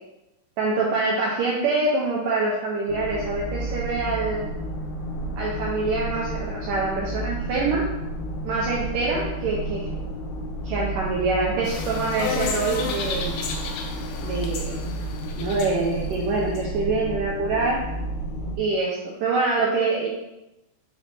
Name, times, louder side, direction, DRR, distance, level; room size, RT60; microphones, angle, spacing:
voice 1, 0.6-4.5 5.4-7.9 8.4-9.9 10.6-13.4 14.2-14.8 15.4-17.8 18.6-20.1, right 3 dB, 75° right, -4 dB, 2.0 m, -25 dB
sound 1, 2.9-18.6, right 1 dB, 60° left, 2.1 m, -31 dB
sound 2, 11.6-16.6, left 5 dB, 85° left, 1.8 m, -32 dB
5.7 x 5.1 x 3.3 m, 0.94 s
omnidirectional pair, 4.6 m